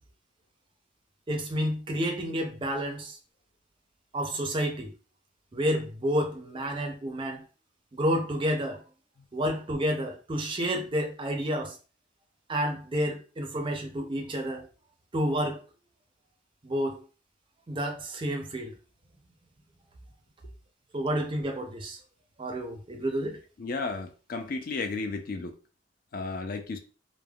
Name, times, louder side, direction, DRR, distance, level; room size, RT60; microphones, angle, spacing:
voice 1, 1.3-3.2 4.1-4.9 5.5-7.4 7.9-8.8 9.3-11.8 12.5-14.7 15.1-15.6 16.6-17.0 17.7-18.7 20.9-22.0 22.4-23.4, equal, 30° right, 0.4 m, -30 dB
voice 2, 23.6-25.5 26.1-26.8, left 3 dB, 50° left, 0.4 m, -33 dB
3.2 x 2.1 x 2.3 m
head